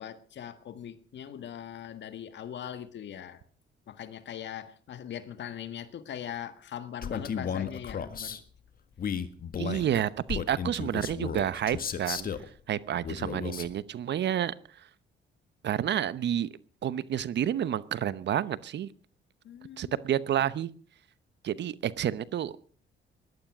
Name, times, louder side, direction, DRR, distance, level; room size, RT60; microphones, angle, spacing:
voice 1, 0.0-3.4 3.9-8.4 19.4-19.9, left 9 dB, 65° left, 1.8 m, -41 dB
Male speech man speaking, 7.0-8.4 9.0-12.5 13.0-13.7, left 7 dB, 45° left, 1.6 m, -34 dB
voice 2, 9.6-12.3 12.7-14.5 15.6-16.5 16.8-18.9 19.8-20.7 21.4-22.6, right 10 dB, 60° right, 0.9 m, -29 dB
17.0 x 12.0 x 6.2 m
cardioid pair, 90°, 20 cm